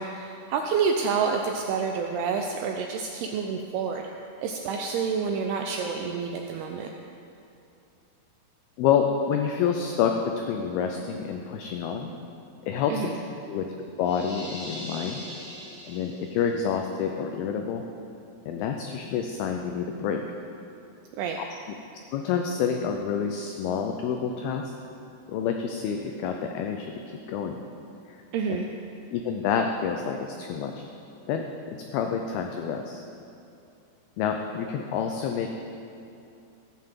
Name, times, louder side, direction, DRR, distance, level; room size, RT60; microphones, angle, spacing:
voice 1, 0.0-4.0 4.4-6.9 12.9-13.2 21.2-21.4 28.3-28.7, right 5 dB, 80° right, 2 dB, 2.3 m, -28 dB
voice 2, 8.8-12.1 12.6-13.1 13.5-13.7 14.0-15.2 15.9-17.8 18.5-20.2 21.5-21.6 22.1-24.7 25.3-27.6 28.1-28.2 29.1-30.9 31.3-33.0 34.2-35.5, left 7 dB, 80° left, 4 dB, 2.2 m, -28 dB
sound 1, 14.0-16.6, equal, 40° left, 1.0 m, -41 dB
16.0 x 5.8 x 7.5 m, 2.6 s
omnidirectional pair, 5.0 m